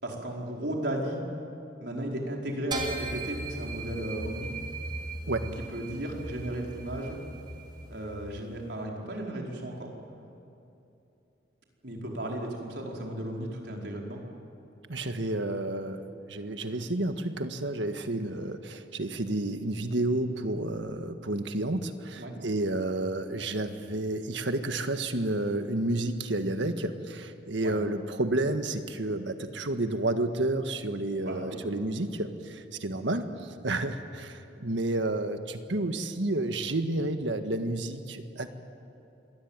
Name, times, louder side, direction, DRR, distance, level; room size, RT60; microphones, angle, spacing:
voice 1, 0.0-1.2 1.8-4.5 5.4-7.2 7.9-9.9 11.8-14.2 22.2-22.3 27.6-27.8 31.2-31.6, right 1 dB, 65° right, -1 dB, 4.9 m, -35 dB
sound 1, 2.7-8.3, right 2 dB, 25° right, 3.0 m, -38 dB
voice 2, 14.9-38.5, right 2 dB, 85° right, 7 dB, 1.7 m, -30 dB
27.0 x 21.5 x 9.1 m, 2.8 s
head